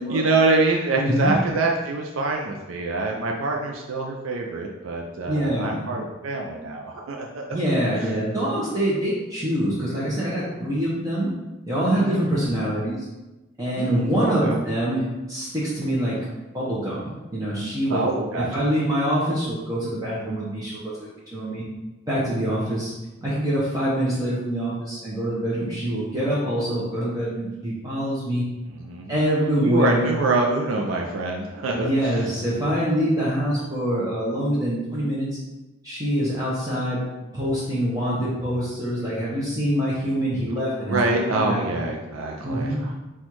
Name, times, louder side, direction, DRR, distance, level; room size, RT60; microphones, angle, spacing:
voice 1, 0.0-7.6 11.9-12.2 13.8-14.1 14.4-14.6 17.9-18.6 28.7-29.2 29.6-32.2 40.9-42.9, right 3 dB, 80° right, 0 dB, 0.5 m, -25 dB
voice 2, 1.0-1.3 5.3-5.8 7.5-11.3 11.7-13.1 13.6-15.0 15.3-16.2 16.5-18.0 18.4-21.6 22.1-22.9 23.2-28.4 29.1-30.1 31.7-35.3 35.8-37.0 37.3-41.0 41.3-41.6 42.4-42.8, equal, 15° right, -8 dB, 0.7 m, -25 dB
4.2 x 2.4 x 4.5 m, 1.1 s
head